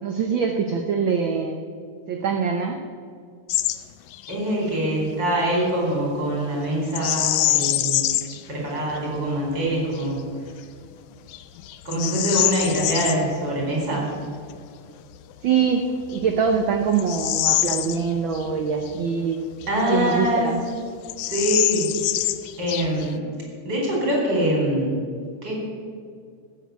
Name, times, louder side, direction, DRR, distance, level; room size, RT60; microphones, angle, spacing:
voice 1, 0.0-1.6 2.1-2.8 15.4-15.8 16.1-19.4 19.8-20.6, right 6 dB, 85° right, 4 dB, 1.0 m, -23 dB
Bird vocalization bird call bird song, 3.5-3.8 4.1-4.4 6.9-8.4 9.0-9.1 9.7-10.1 10.6-10.7 11.3-13.2 15.3-15.4 16.0-18.5 18.8-18.9 19.6-20.4 20.7-20.8 21.0-23.2, left 15 dB, 85° left, 2.0 m, -25 dB
voice 2, 4.3-8.0 8.5-10.2 11.8-14.0 19.7-20.5 21.3-22.2 22.6-23.2 23.6-24.9 25.4-25.5, right 1 dB, 35° right, -2 dB, 5.1 m, -24 dB
15.5 x 8.0 x 8.3 m, 2.2 s
omnidirectional pair, 3.4 m